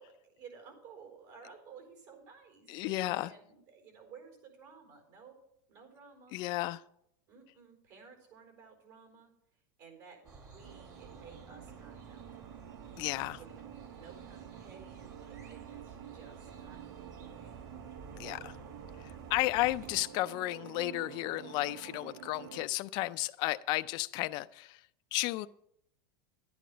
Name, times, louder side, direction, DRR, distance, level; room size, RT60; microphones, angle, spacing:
voice 1, 0.0-5.4 5.7-6.4 7.3-9.3 9.8-12.8 13.3-17.7 18.1-18.7, right 5 dB, 60° right, 4 dB, 4.4 m, -55 dB
voice 2, 2.7-3.3 6.3-6.8 13.0-13.4 18.2-18.5 19.3-24.8 25.1-25.5, left 18 dB, 45° left, 12 dB, 0.4 m, -33 dB
sound 1, 10.2-20.0, right 4 dB, 30° right, 1.6 m, -52 dB
sound 2, 10.6-22.7, right 11 dB, 75° right, 0.6 m, -50 dB
11.0 x 9.3 x 5.0 m, 0.74 s
supercardioid pair, 140°, 11 cm